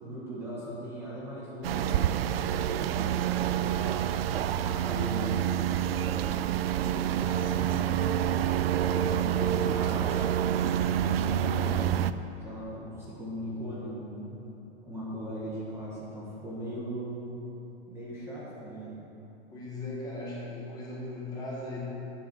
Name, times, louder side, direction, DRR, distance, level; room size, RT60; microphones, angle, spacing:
voice 1, 0.0-4.0 4.5-5.6 5.9-8.1 8.8-12.2 12.4-14.4 14.8-17.2 17.9-19.0, equal, 10° right, -8 dB, 1.4 m, -39 dB
sound 1, 1.6-12.1, right 10 dB, 65° right, 0.5 m, -27 dB
voice 2, 19.5-21.8, left 2 dB, 10° left, -6 dB, 1.5 m, -38 dB
11.0 x 7.6 x 6.1 m, 3.0 s
supercardioid pair, 175°, 32 cm